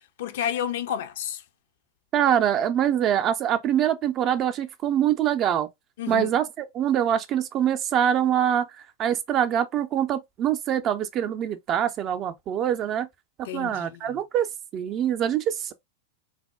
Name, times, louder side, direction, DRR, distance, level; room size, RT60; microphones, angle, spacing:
voice 1, 0.2-1.4 6.0-6.3 13.4-14.2, left 10 dB, 55° left, 0.5 m, -31 dB
voice 2, 2.1-5.7 6.1-8.7 9.0-13.1 13.5-15.7, right 10 dB, 35° right, 0.5 m, -24 dB
4.0 x 2.1 x 3.4 m
figure-of-eight pair, 90°, 0 cm